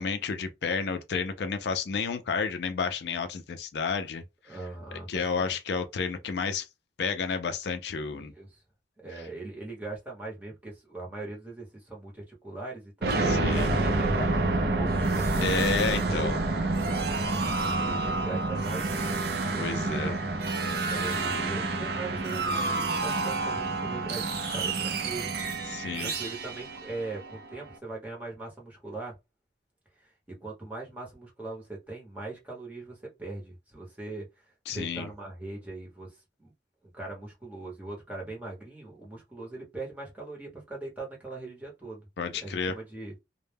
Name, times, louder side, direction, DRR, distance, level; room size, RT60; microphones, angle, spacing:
voice 1, 0.0-4.6 5.1-6.7 7.0-8.3 13.2-13.7 15.4-16.4 19.5-20.2 25.7-26.1 34.7-35.1 42.2-42.7, left 5 dB, 70° left, 0.4 m, -31 dB
voice 2, 4.5-5.6 8.2-8.6 9.0-16.8 17.6-19.2 19.5-20.1 20.7-25.3 26.0-29.2 30.0-34.2 34.7-36.1 36.4-36.5 36.9-43.1, right 2 dB, 10° right, 0.9 m, -40 dB
sound 1, 13.0-27.7, right 2 dB, 60° right, 0.5 m, -28 dB
2.1 x 2.1 x 3.3 m
head